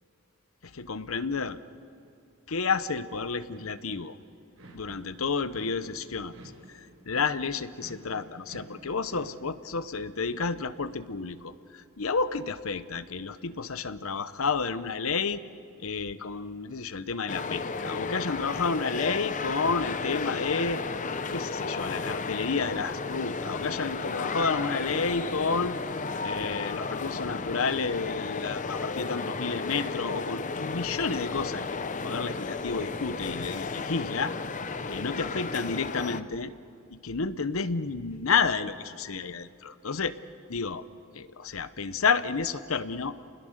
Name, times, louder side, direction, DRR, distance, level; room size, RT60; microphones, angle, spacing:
voice 1, 0.7-1.6 2.5-4.2 4.7-6.3 6.7-15.4 15.8-20.8 21.3-25.7 26.2-34.3 34.9-36.5 36.9-40.2 40.5-40.8 41.1-43.1, left 5 dB, 70° left, 14 dB, 0.8 m, -31 dB
sound 1, 3.4-4.0 4.5-5.1 5.5-9.4, right 1 dB, 70° right, 5.9 m, -51 dB
sound 2, 17.3-36.2, left 4 dB, 35° left, 0.7 m, -33 dB
30.0 x 21.0 x 6.6 m, 2.5 s
head